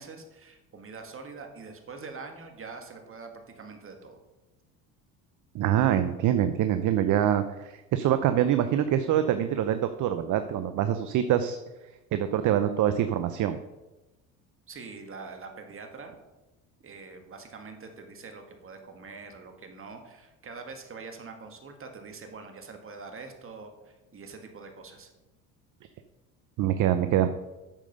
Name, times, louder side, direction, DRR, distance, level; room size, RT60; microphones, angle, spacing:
voice 1, 0.0-4.2 14.7-16.2 16.8-25.1, right 4 dB, 35° right, 4 dB, 2.0 m, -44 dB
voice 2, 5.5-11.6 12.1-13.6 26.6-27.3, right 10 dB, 55° right, 9 dB, 0.7 m, -25 dB
9.0 x 6.7 x 5.3 m, 1.0 s
supercardioid pair, 85°, 38 cm